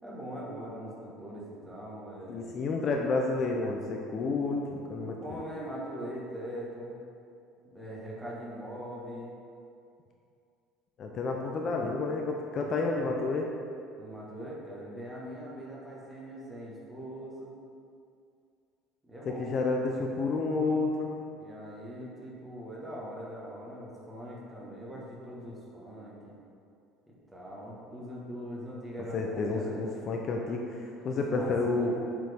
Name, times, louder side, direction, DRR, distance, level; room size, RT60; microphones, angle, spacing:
voice 1, 0.0-2.5 5.0-7.0 7.6-9.3 12.6-12.7 14.0-17.5 19.0-19.7 21.3-26.4 27.1-30.0 31.1-32.0, equal, 10° right, -5 dB, 1.4 m, -42 dB
voice 2, 2.3-5.4 11.0-13.5 19.3-21.1 29.1-32.0, left 3 dB, 40° left, 1 dB, 0.5 m, -30 dB
7.5 x 5.0 x 3.5 m, 2.4 s
cardioid pair, 140°, 0 cm